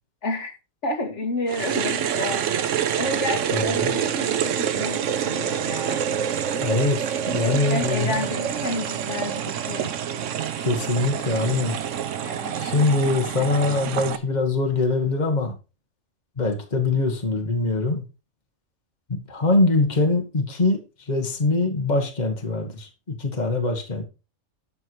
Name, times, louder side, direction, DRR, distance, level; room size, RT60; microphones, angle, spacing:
voice 1, 0.2-0.5 0.8-2.7 3.0-6.0 7.4-9.9 12.2-12.6, left 2 dB, 55° left, 2.2 m, -30 dB
sound 1, 1.5-14.2, right 9 dB, 65° right, 1.0 m, -27 dB
voice 2, 3.5-3.9 6.6-8.3 10.6-11.8 12.5-15.5 16.4-18.0 19.1-24.0, left 3 dB, 30° left, 1.8 m, -23 dB
12.5 x 4.7 x 4.8 m
omnidirectional pair, 1.5 m